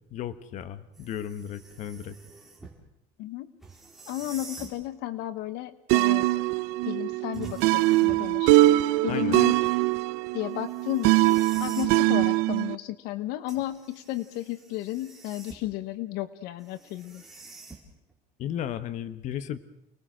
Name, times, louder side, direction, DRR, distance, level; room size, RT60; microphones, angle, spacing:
voice 1, 0.1-2.2 9.1-9.4 18.4-19.6, left 10 dB, 45° left, 13 dB, 1.3 m, -34 dB
sound 1, 0.9-2.8 3.6-4.8 7.3-8.4 10.6-12.0 13.5-15.8 16.6-18.1, right 3 dB, ahead, 4.5 m, -47 dB
voice 2, 3.2-3.5 4.1-6.3 6.9-8.5 9.0-9.5 10.3-17.2, left 15 dB, 70° left, 13 dB, 1.1 m, -33 dB
sound 2, 5.9-12.7, right 18 dB, 80° right, 0.9 m, -22 dB
29.5 x 20.5 x 6.4 m, 0.82 s
cardioid pair, 155°, 17 cm